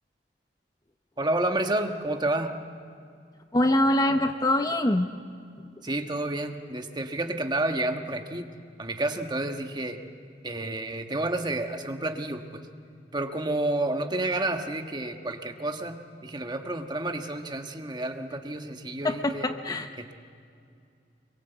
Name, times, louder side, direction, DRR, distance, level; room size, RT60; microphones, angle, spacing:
voice 1, 1.2-2.5 5.8-8.5 8.8-10.0 10.4-12.6 13.1-19.5 20.0-20.1, right 2 dB, 25° right, 5 dB, 1.4 m, -30 dB
voice 2, 3.5-5.1 19.0-19.9, left 1 dB, 20° left, 7 dB, 0.7 m, -24 dB
25.5 x 22.5 x 8.0 m, 2.4 s
head